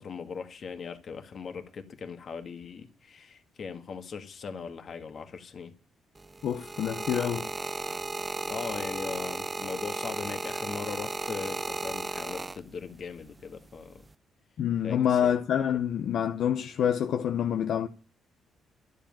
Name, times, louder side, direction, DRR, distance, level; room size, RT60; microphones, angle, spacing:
voice 1, 0.0-5.7 8.4-14.0 14.8-15.4, left 5 dB, 50° left, 1.9 m, -39 dB
sound 1, 6.2-13.0 13.8-14.1, right 3 dB, 20° right, 0.6 m, -35 dB
voice 2, 6.4-7.5 14.6-17.9, left 9 dB, 70° left, 0.9 m, -27 dB
12.0 x 7.6 x 8.9 m
cardioid pair, 90°, 0 cm